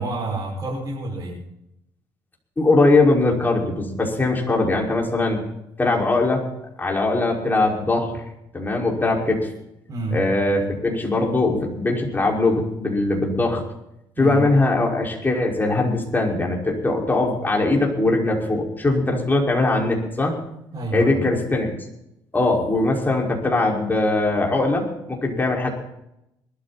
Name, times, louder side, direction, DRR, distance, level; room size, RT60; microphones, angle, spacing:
voice 1, 0.0-1.4 9.9-10.2 14.2-14.5 20.7-21.3, right 2 dB, 40° right, -4 dB, 6.0 m, -28 dB
voice 2, 2.6-5.4 5.8-6.4 6.8-8.2 8.5-9.5 10.1-13.6 14.2-20.4 20.9-21.7 22.3-25.7, left 2 dB, 20° left, -1 dB, 5.4 m, -21 dB
21.0 x 13.0 x 4.3 m, 0.83 s
cardioid pair, 85°, 9 cm